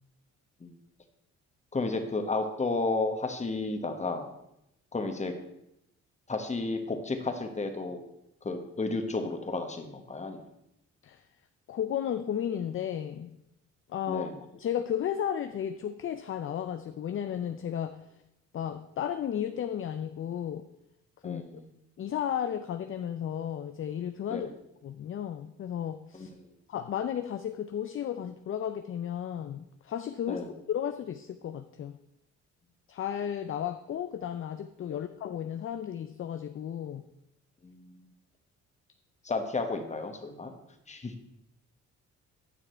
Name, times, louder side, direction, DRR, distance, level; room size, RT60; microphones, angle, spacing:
voice 1, 1.7-4.3 4.9-5.3 6.3-8.0 8.4-10.4 14.1-14.4 21.2-21.7 24.3-24.4 26.1-26.3 30.3-30.5 34.9-35.0 37.6-37.9 39.2-40.5 40.9-41.2, left 3 dB, 25° left, 5 dB, 1.3 m, -32 dB
voice 2, 11.7-13.4 13.9-18.0 18.5-20.6 21.2-21.4 22.0-24.5 24.8-26.3 26.7-32.0 32.9-37.0, left 9 dB, 45° left, 10 dB, 0.5 m, -34 dB
9.4 x 5.9 x 4.4 m, 0.84 s
cardioid pair, 90°, 30 cm